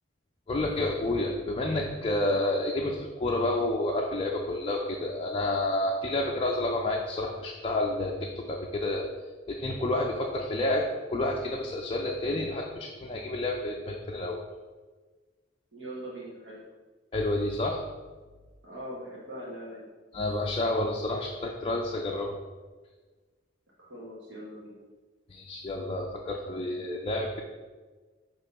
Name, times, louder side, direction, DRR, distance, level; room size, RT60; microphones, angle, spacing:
voice 1, 0.5-9.1 9.5-14.4 17.1-17.8 20.1-22.4 25.3-27.4, left 1 dB, 30° left, 0 dB, 0.5 m, -29 dB
voice 2, 15.7-16.6 18.6-19.9 23.8-24.8, right 1 dB, 65° right, -5 dB, 1.2 m, -41 dB
6.3 x 3.0 x 5.3 m, 1.3 s
head